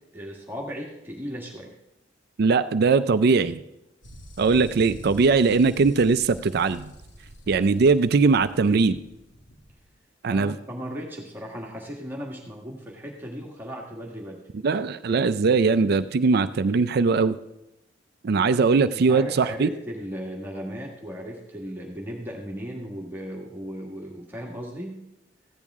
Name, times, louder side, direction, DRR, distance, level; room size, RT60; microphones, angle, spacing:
voice 1, 0.1-1.7 10.3-14.4 18.9-25.0, equal, 10° right, -1 dB, 1.6 m, -36 dB
voice 2, 2.4-3.6 4.4-6.9 7.5-9.0 10.2-10.5 14.6-17.4 18.2-19.7, right 4 dB, 60° right, 13 dB, 0.4 m, -20 dB
sound 1, 4.0-9.9, equal, 75° left, 1.8 m, -45 dB
15.0 x 10.0 x 3.6 m, 0.86 s
head